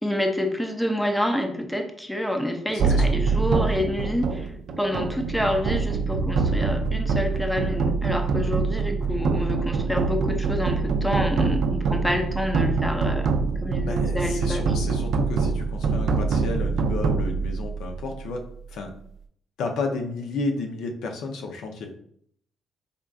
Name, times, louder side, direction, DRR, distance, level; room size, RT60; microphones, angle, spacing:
voice 1, 0.0-4.5 4.8-13.3 13.6-14.7, left 1 dB, 5° left, 4 dB, 0.5 m, -27 dB
voice 2, 2.7-3.1 13.8-18.4 18.7-18.9 19.6-21.9, left 3 dB, 80° left, 3 dB, 0.5 m, -32 dB
sound 1, 2.8-18.1, right 4 dB, 70° right, 0.4 m, -24 dB
3.6 x 3.5 x 2.3 m, 0.65 s
cardioid pair, 90°, 0 cm